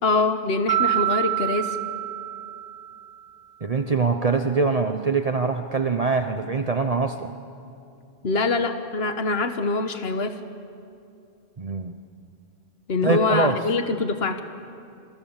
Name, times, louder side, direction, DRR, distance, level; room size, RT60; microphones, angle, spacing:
voice 1, 0.0-1.8 8.2-10.3 12.9-14.4, left 3 dB, 80° left, 8 dB, 1.4 m, -24 dB
Mallet percussion, 0.7-3.1, right 14 dB, 65° right, 1.1 m, -26 dB
voice 2, 3.6-7.3 11.6-11.9 13.0-13.6, right 4 dB, 40° right, 7 dB, 0.9 m, -23 dB
28.0 x 25.5 x 7.3 m, 2.5 s
omnidirectional pair, 1.0 m